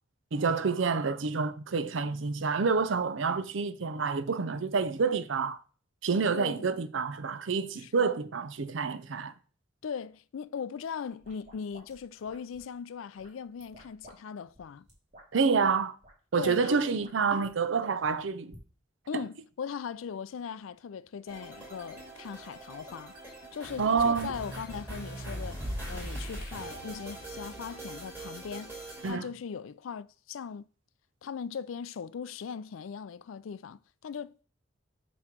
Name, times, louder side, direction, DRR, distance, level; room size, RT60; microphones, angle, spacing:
voice 1, 0.3-5.6 6.0-9.3 15.3-15.9 16.3-18.6 19.1-19.2 23.8-24.3 29.0-29.3, right 5 dB, 70° right, 0.6 m, -28 dB
voice 2, 6.3-6.7 7.8-8.1 9.8-14.8 16.4-17.0 19.1-23.1 23.5-25.6 25.9-30.7 31.2-34.4, left 6 dB, 85° left, 0.4 m, -39 dB
sound 1, 11.0-12.7 13.2-14.2 14.4-15.4 16.0-16.1 16.4-16.5 16.8-17.5 18.0-18.6, right 1 dB, 35° right, 2.4 m, -54 dB
sound 2, 21.3-29.1, right 1 dB, 10° right, 3.4 m, -41 dB
7.7 x 3.1 x 5.9 m
head